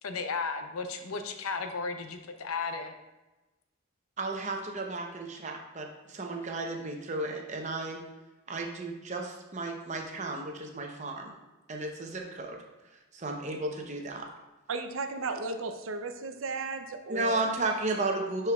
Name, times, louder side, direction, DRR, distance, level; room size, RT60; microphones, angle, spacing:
voice 1, 0.0-2.9, left 4 dB, 90° left, 7 dB, 0.7 m, -34 dB
voice 2, 4.2-8.0 8.5-11.3 11.7-12.6 12.9-14.3 17.1-18.5, right 2 dB, 35° right, 2 dB, 0.7 m, -33 dB
voice 3, 14.7-17.4, right 4 dB, 70° right, 7 dB, 0.6 m, -35 dB
10.5 x 4.5 x 2.3 m, 1.1 s
head